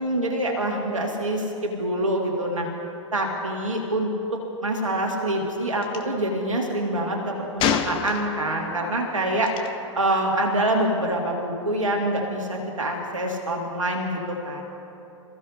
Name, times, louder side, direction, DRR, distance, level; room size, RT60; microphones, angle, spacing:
voice 1, 0.0-2.7 3.1-9.5 10.0-14.6, right 1 dB, 75° right, 0 dB, 2.2 m, -26 dB
Gunshot gunfire, 5.8-6.0 7.6-8.6 9.5-9.7, left 7 dB, 30° left, 1.1 m, -26 dB
28.0 x 15.0 x 2.8 m, 2.9 s
figure-of-eight pair, 100°, 17 cm